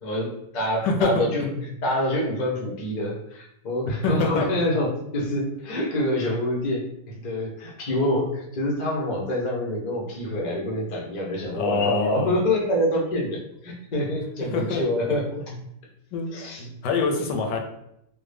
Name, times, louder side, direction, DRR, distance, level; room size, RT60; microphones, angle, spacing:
voice 1, 0.0-1.5 1.8-15.2 16.3-16.7, left 1 dB, 65° left, -2 dB, 0.4 m, -26 dB
voice 2, 0.8-1.6 4.0-4.5 11.4-12.3 14.5-14.8 16.1-16.3 16.6-17.6, left 4 dB, 80° left, 2 dB, 1.2 m, -25 dB
3.2 x 2.1 x 3.3 m, 0.79 s
omnidirectional pair, 1.9 m